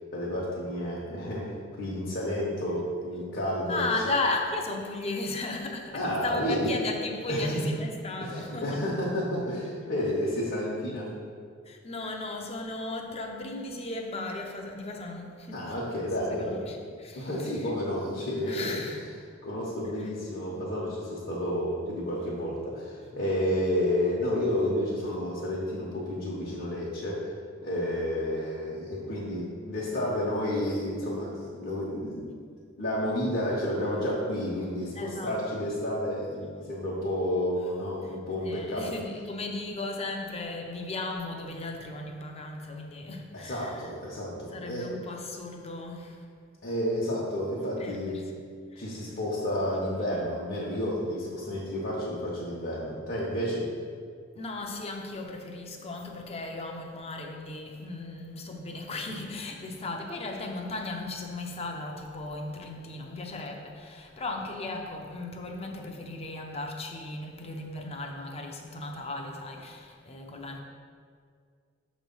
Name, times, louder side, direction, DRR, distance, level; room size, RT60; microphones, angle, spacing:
voice 1, 0.1-3.9 5.9-6.7 7.3-7.6 8.2-11.1 15.5-16.7 17.1-19.0 19.4-27.3 27.6-32.3 32.8-38.9 43.3-44.9 46.6-48.4 48.8-53.7, left 1 dB, 55° left, 1.0 m, -31 dB
voice 2, 3.7-8.8 11.7-15.8 16.3-17.7 18.5-19.0 19.5-19.6 20.0-20.1 35.0-35.4 38.4-43.9 44.5-46.3 47.8-48.2 48.7-48.8 54.3-70.6, left 2 dB, 30° left, 0.6 m, -36 dB
6.2 x 3.1 x 5.4 m
head